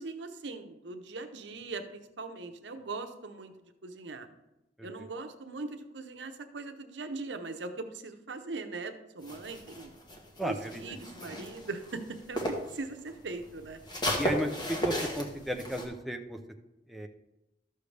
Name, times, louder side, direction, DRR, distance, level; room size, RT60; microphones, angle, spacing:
voice 1, 0.0-3.5 3.8-4.3 4.8-9.9 10.4-13.8, right 3 dB, 80° right, 7 dB, 0.8 m, -40 dB
sound 1, 9.2-12.8 13.1-15.8, equal, 25° left, 1.4 m, -35 dB
voice 2, 10.4-10.8 14.2-16.4 16.9-17.1, equal, ahead, 3 dB, 0.6 m, -34 dB
13.0 x 6.7 x 3.3 m, 0.94 s
head